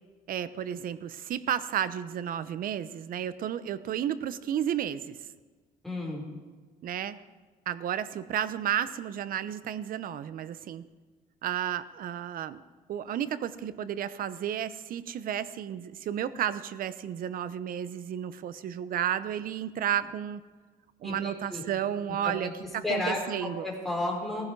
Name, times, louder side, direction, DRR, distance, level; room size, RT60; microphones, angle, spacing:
voice 1, 0.3-5.2 6.8-7.2 7.7-10.8 11.4-12.6 12.9-20.4 21.0-23.7, right 10 dB, 55° right, 15 dB, 0.9 m, -32 dB
voice 2, 5.8-6.2 21.0-21.6 22.2-22.5 22.8-24.5, left 2 dB, ahead, -2 dB, 5.0 m, -32 dB
18.0 x 15.5 x 4.7 m, 1.4 s
cardioid pair, 110°, 17 cm